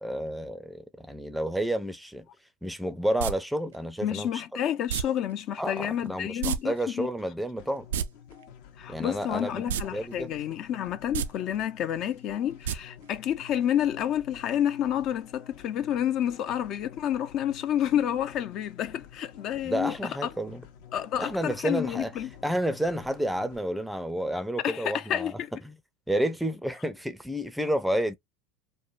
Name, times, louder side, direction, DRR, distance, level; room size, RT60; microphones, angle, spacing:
voice 1, 0.0-2.3 2.6-4.4 5.6-7.9 8.9-10.3 19.6-20.6 21.2-22.1 22.4-25.3 25.6-25.7 26.1-28.2, right 1 dB, ahead, 0.5 m, -30 dB
sound 1, 3.2-3.3 4.9-5.0 6.4-6.6 6.8-6.9 7.8-8.0 9.7-9.8 10.2-10.3 11.0-11.3 12.6-12.8 13.1-13.2, right 9 dB, 85° right, 0.3 m, -28 dB
voice 2, 4.0-7.1 8.8-20.2 20.9-22.3 24.6-25.5, left 10 dB, 50° left, 0.5 m, -29 dB
sound 2, 7.6-23.6, left 8 dB, 65° left, 0.9 m, -50 dB
3.1 x 2.1 x 2.5 m
hypercardioid pair, 105°, 0 cm